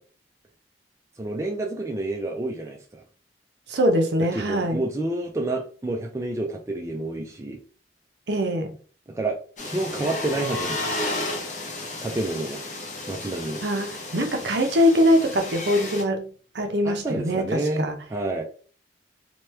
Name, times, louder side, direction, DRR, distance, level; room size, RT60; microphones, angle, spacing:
voice 1, 1.2-3.0 4.3-7.6 9.1-9.4 9.6-11.1 12.0-12.6 13.1-13.6 16.8-18.4, right 2 dB, 15° right, 0.3 m, -29 dB
voice 2, 3.7-4.8 8.3-8.7 13.6-17.9, equal, 70° right, 0.6 m, -23 dB
sound 1, 9.6-16.0, left 2 dB, 40° left, 0.7 m, -33 dB
3.0 x 2.2 x 3.2 m
head